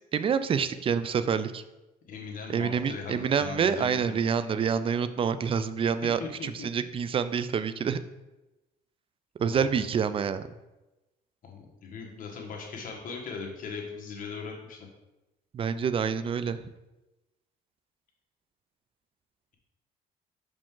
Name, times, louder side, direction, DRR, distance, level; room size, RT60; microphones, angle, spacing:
voice 1, 0.1-1.6 2.5-8.0 9.4-10.4 15.5-16.6, right 7 dB, 35° right, 13 dB, 0.4 m, -27 dB
voice 2, 2.1-4.2 6.2-6.7 9.4-9.8 11.4-14.9, left 5 dB, 55° left, 0 dB, 1.5 m, -39 dB
5.7 x 5.0 x 3.7 m, 1.0 s
cardioid pair, 110°, 17 cm